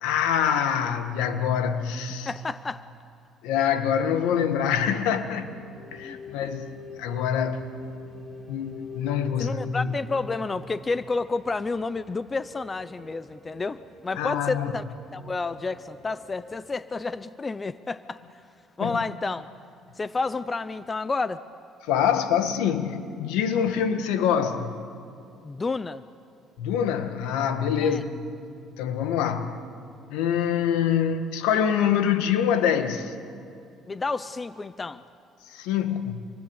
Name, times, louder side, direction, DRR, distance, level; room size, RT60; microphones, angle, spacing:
voice 1, 0.0-2.3 3.4-5.5 5.9-7.6 8.5-9.9 14.2-14.7 18.8-19.0 21.9-24.8 26.6-28.2 28.8-29.6 30.1-33.1 35.5-36.2, left 8 dB, 85° left, 1.8 m, -25 dB
voice 2, 2.3-2.8 6.0-6.2 9.4-14.8 15.1-18.2 18.8-19.5 20.0-21.4 25.4-26.0 27.8-28.0 33.9-35.0, left 3 dB, 25° left, 0.7 m, -30 dB
sound 1, 4.3-16.6, left 4 dB, 10° left, 3.9 m, -46 dB
28.0 x 23.5 x 8.3 m
cardioid pair, 95°, 0 cm